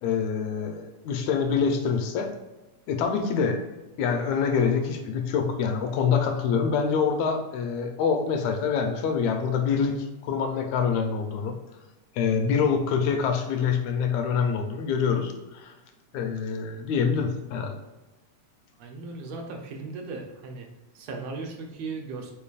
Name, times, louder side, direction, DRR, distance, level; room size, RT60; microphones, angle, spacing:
voice 1, 0.0-2.3 2.9-3.6 4.0-11.6 12.2-15.7 16.1-17.8, left 6 dB, 80° left, 5 dB, 1.9 m, -25 dB
voice 2, 18.8-20.7 20.9-22.3, right 3 dB, 70° right, 2 dB, 1.8 m, -37 dB
8.6 x 4.6 x 2.4 m, 1.1 s
omnidirectional pair, 3.3 m